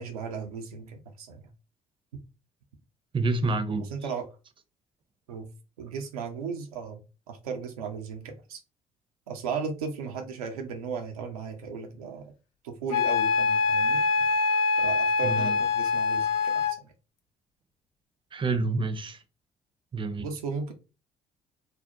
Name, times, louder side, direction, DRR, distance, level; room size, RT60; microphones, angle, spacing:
voice 1, 0.0-1.5 3.9-4.3 5.3-5.5 5.8-8.6 9.3-12.3 12.6-14.0 14.8-16.9 20.2-20.7, right 5 dB, 85° right, 0.4 m, -36 dB
voice 2, 3.1-3.9 15.2-15.6 18.3-19.2 19.9-20.3, right 3 dB, 25° right, 0.5 m, -28 dB
Wind instrument woodwind instrument, 12.9-16.8, left 4 dB, 80° left, 0.4 m, -24 dB
2.5 x 2.0 x 2.7 m
hypercardioid pair, 45°, 19 cm